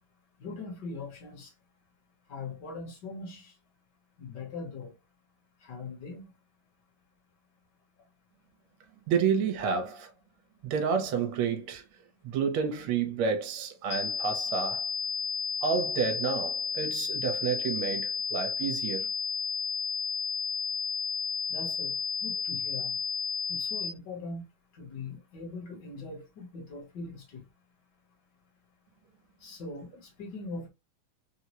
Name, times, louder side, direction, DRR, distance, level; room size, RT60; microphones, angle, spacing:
voice 1, 0.4-1.5 2.3-3.5 4.2-4.9 5.6-6.3 21.5-21.9 22.2-23.0 23.5-24.4 24.7-27.4 29.4-30.7, left 3 dB, 55° left, 1.5 m, -41 dB
voice 2, 9.1-10.1 10.6-11.8 12.2-14.9 15.6-19.1, right 6 dB, 75° right, 1.6 m, -30 dB
sound 1, 13.9-23.9, left 5 dB, 75° left, 1.7 m, -32 dB
4.1 x 2.1 x 2.9 m
omnidirectional pair, 2.4 m